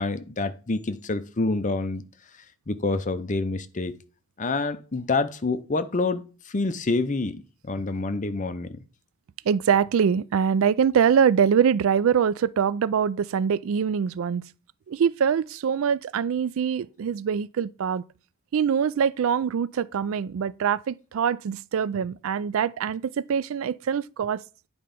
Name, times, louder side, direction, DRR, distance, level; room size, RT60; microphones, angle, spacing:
voice 1, 0.0-2.0 2.7-3.9 4.4-8.8, left 3 dB, 35° left, 0.6 m, -27 dB
voice 2, 9.5-14.4 14.9-18.0 18.5-24.4, right 7 dB, 65° right, 0.3 m, -23 dB
9.5 x 4.3 x 5.2 m
head